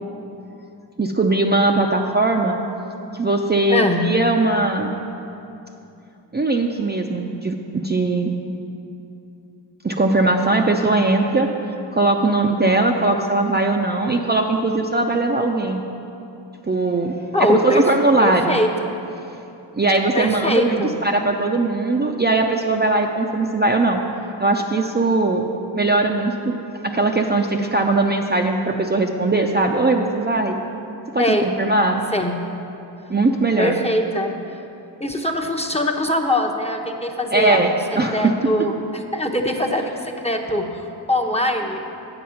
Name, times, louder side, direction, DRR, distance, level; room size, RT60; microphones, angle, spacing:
voice 1, 1.0-2.6 3.1-4.9 6.3-8.3 9.8-11.5 11.9-15.8 16.7-17.1 17.4-18.6 19.7-24.0 24.4-25.5 25.7-26.6 26.8-30.6 31.1-32.0 33.1-33.8 37.3-38.4, right 2 dB, 20° right, 1 dB, 0.6 m, -20 dB
voice 2, 3.7-4.0 17.3-17.9 18.2-19.0 20.1-21.0 31.2-31.5 32.1-32.4 33.6-34.4 35.0-37.7 38.1-41.8, left 1 dB, 15° left, 2 dB, 0.8 m, -22 dB
8.3 x 7.8 x 5.8 m, 2.8 s
cardioid pair, 55°, 47 cm